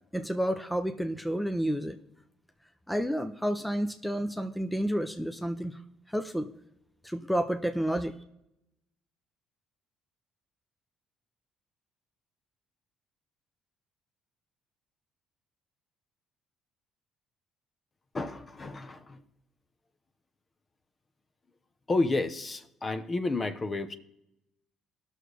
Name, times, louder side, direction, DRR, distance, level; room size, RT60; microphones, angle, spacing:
voice 1, 0.1-2.0 2.9-5.8 6.1-6.5 7.0-8.1, equal, 5° left, 7 dB, 0.7 m, -30 dB
voice 2, 18.1-19.2 21.9-23.9, left 2 dB, 30° left, 9 dB, 0.9 m, -31 dB
17.5 x 6.5 x 3.3 m, 0.85 s
cardioid pair, 85°, 0 cm